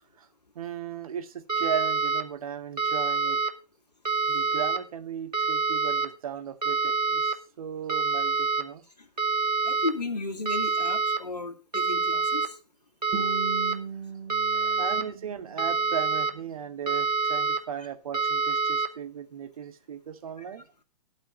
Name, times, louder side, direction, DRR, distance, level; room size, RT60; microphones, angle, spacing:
voice 1, 0.6-3.4 4.3-8.8 14.5-20.7, right 8 dB, 60° right, 8 dB, 1.8 m, -36 dB
sound 1, 1.5-2.2 2.8-3.5 4.1-4.8 5.3-6.1 6.6-7.3 7.9-8.6 9.2-9.9 10.5-11.2 11.7-12.5 13.0-13.8 14.3-15.0 15.6-16.3 16.9-17.6 18.1-18.9, right 4 dB, 90° right, 1.8 m, -26 dB
voice 2, 9.6-12.6 17.7-17.9 20.4-20.6, left 3 dB, 90° left, 4 dB, 2.5 m, -34 dB
Guitar, 13.1-16.1, right 5 dB, 30° right, 2.3 m, -38 dB
12.0 x 5.6 x 6.3 m, 0.35 s
figure-of-eight pair, 125°, 20 cm